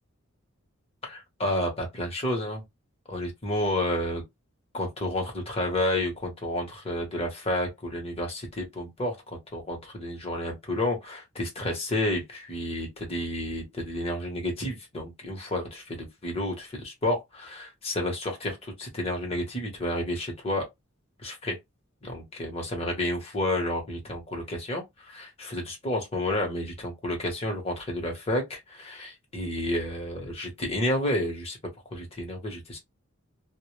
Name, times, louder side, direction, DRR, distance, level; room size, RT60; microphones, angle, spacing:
voice 1, 1.0-2.6 3.1-4.2 4.7-20.7 21.2-21.6 22.0-31.6 31.9-32.8, left 1 dB, 30° left, 0.8 m, -30 dB
2.0 x 2.0 x 3.0 m
head